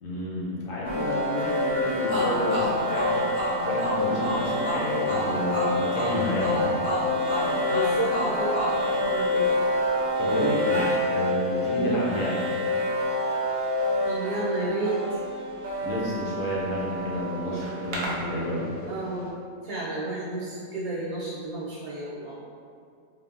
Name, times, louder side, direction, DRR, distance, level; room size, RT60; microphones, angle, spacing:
voice 1, 0.0-3.3 3.6-6.8 10.2-10.8 11.1-12.5 15.8-18.7, equal, 75° left, -5 dB, 1.0 m, -30 dB
sound 1, 0.8-18.8, left 1 dB, 60° right, 0.6 m, -27 dB
sound 2, 2.1-9.7, equal, 50° left, 0.5 m, -31 dB
voice 2, 7.7-8.6 8.9-9.6 11.7-12.0 14.0-15.0 18.9-19.3 19.6-22.4, right 2 dB, 85° right, -7 dB, 1.0 m, -31 dB
3.5 x 2.0 x 2.4 m, 2.3 s
omnidirectional pair, 1.5 m